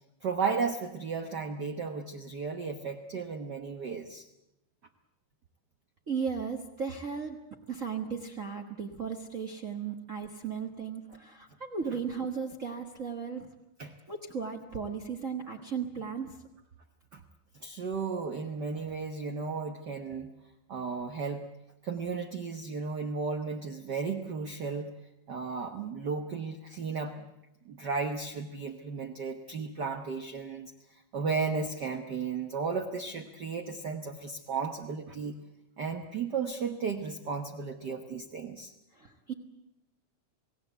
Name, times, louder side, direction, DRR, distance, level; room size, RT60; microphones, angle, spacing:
voice 1, 0.2-4.3 13.8-13.9 17.1-17.2 17.5-20.3 20.7-21.5 21.8-24.9 25.3-27.3 27.6-35.4 35.8-38.7, right 5 dB, 65° right, 5 dB, 1.0 m, -34 dB
voice 2, 6.1-7.4 7.7-13.5 14.1-16.4 38.9-39.3, right 6 dB, 40° right, 4 dB, 1.1 m, -36 dB
28.5 x 18.5 x 8.0 m, 0.91 s
omnidirectional pair, 3.7 m